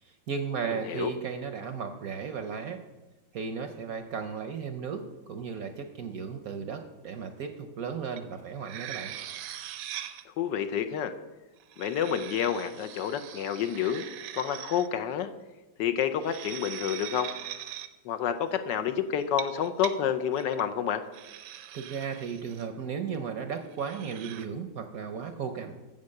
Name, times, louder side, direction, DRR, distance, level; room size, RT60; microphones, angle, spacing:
voice 1, 0.0-2.8 3.3-9.1 21.7-25.7, right 6 dB, 60° right, 7 dB, 1.0 m, -35 dB
sound 1, 8.2-8.3 8.6-10.2 11.6-14.9 16.0-17.9 19.2-19.9 20.3-20.6 21.1-22.7 23.7-24.5, right 11 dB, 80° right, 1.5 m, -41 dB
voice 2, 10.3-11.1 11.8-14.0 14.4-15.3 15.8-17.3 18.0-21.0, left 9 dB, 70° left, 9 dB, 1.3 m, -29 dB
9.5 x 7.8 x 6.5 m, 1.1 s
omnidirectional pair, 2.1 m